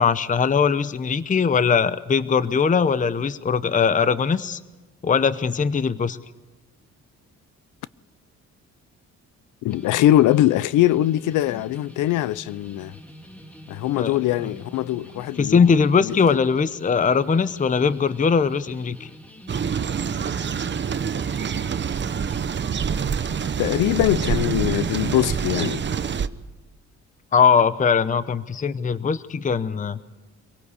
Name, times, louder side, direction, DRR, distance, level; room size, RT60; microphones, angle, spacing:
voice 1, 0.0-4.6 5.0-6.2 14.0-14.2 15.4-19.1 27.3-30.0, left 6 dB, 25° left, 0.8 m, -20 dB
voice 2, 9.6-12.9 13.7-16.1 23.6-25.8, left 14 dB, 85° left, 0.6 m, -22 dB
sound 1, 9.7-22.4, equal, 5° left, 2.2 m, -45 dB
sound 2, 19.5-26.3, right 7 dB, 35° right, 0.9 m, -26 dB
25.0 x 17.5 x 8.3 m
cardioid pair, 90°, 30 cm